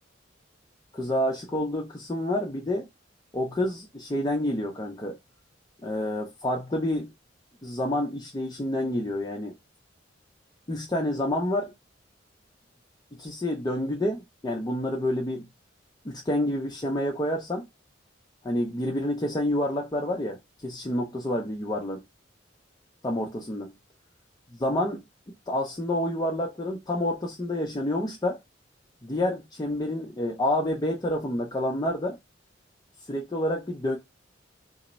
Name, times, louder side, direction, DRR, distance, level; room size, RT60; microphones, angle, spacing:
voice 1, 0.9-2.9 3.3-5.2 5.8-7.1 7.6-9.5 10.7-11.7 13.1-15.5 16.0-17.7 18.4-22.0 23.0-23.8 24.5-25.1 25.5-28.4 29.0-32.2 33.1-34.0, left 1 dB, 20° left, 0.5 m, -28 dB
3.0 x 2.1 x 4.0 m
head